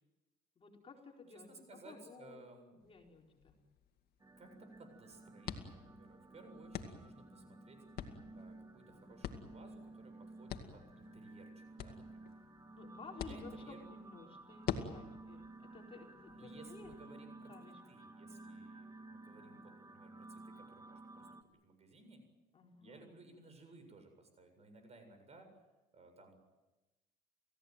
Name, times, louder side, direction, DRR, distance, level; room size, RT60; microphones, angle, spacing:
voice 1, 0.6-2.4 2.8-3.6 12.7-17.8 22.5-23.0, left 5 dB, 35° left, 1 dB, 4.4 m, -55 dB
voice 2, 1.3-2.8 4.4-7.8 8.3-12.3 13.1-13.8 16.3-22.2 22.8-25.5 25.9-26.3, right 2 dB, 40° right, 7 dB, 7.6 m, -59 dB
sound 1, 2.8-17.0, left 9 dB, 65° left, 2.3 m, -48 dB
sound 2, 4.2-21.4, right 2 dB, 20° right, 1.9 m, -54 dB
29.5 x 16.5 x 9.5 m, 1.1 s
cardioid pair, 110°, 17 cm